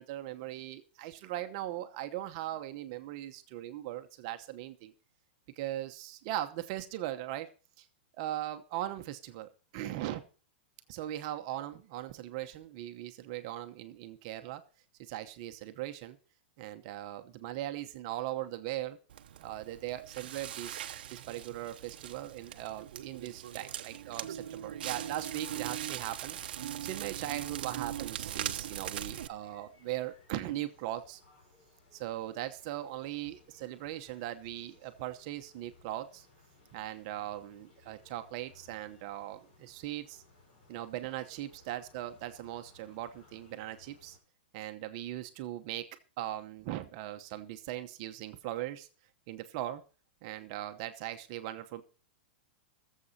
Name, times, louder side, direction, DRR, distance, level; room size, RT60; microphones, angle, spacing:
voice 1, 0.0-4.9 5.5-7.5 7.8-7.9 8.2-10.2 10.9-14.6 15.0-16.2 16.6-19.0 19.4-31.2 31.9-36.3 36.7-40.2 40.7-44.2 44.5-45.9 46.2-48.9 49.3-49.8 50.2-51.8, right 14 dB, 30° right, 7 dB, 0.9 m, -39 dB
Crackle, 19.1-29.3, right 11 dB, 60° right, 0.7 m, -40 dB
sound 1, 28.1-44.2, left 3 dB, 35° left, 6.7 m, -62 dB
20.0 x 7.5 x 4.2 m, 0.37 s
supercardioid pair, 180°, 6 cm